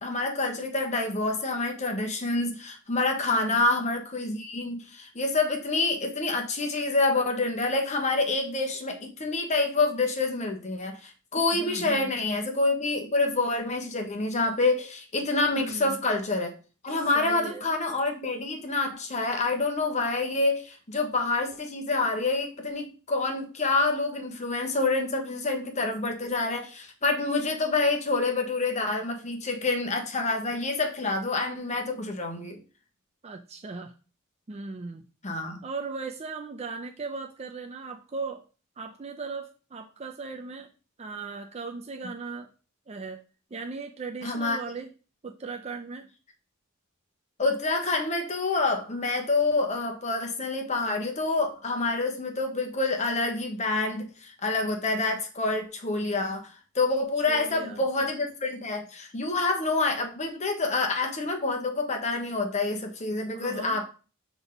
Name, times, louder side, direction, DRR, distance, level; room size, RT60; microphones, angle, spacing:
voice 1, 0.0-16.5 16.8-32.6 35.2-35.6 44.2-44.6 47.4-63.8, left 3 dB, 35° left, 3 dB, 1.2 m, -27 dB
voice 2, 3.3-3.6 11.5-12.2 15.5-16.0 16.9-17.7 33.2-33.9 34.5-35.0 35.6-38.4 38.8-40.7 41.0-42.5 42.9-43.2 43.5-44.9 45.2-46.1 57.3-57.8 63.3-63.8, right 4 dB, 30° right, 4 dB, 0.5 m, -38 dB
7.1 x 3.6 x 3.9 m, 0.36 s
head